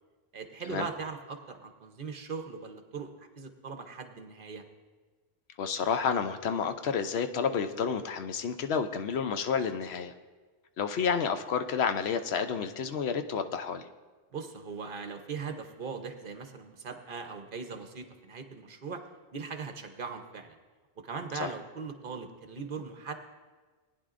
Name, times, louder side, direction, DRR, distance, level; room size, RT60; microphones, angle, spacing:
voice 1, 0.3-4.6 14.3-19.0 19.3-20.6 21.0-23.1, right 5 dB, 55° right, 6 dB, 1.0 m, -40 dB
voice 2, 5.6-10.1 10.8-13.9 21.4-21.5, left 6 dB, 75° left, 8 dB, 0.9 m, -30 dB
19.0 x 9.9 x 2.5 m, 1.4 s
omnidirectional pair, 1.1 m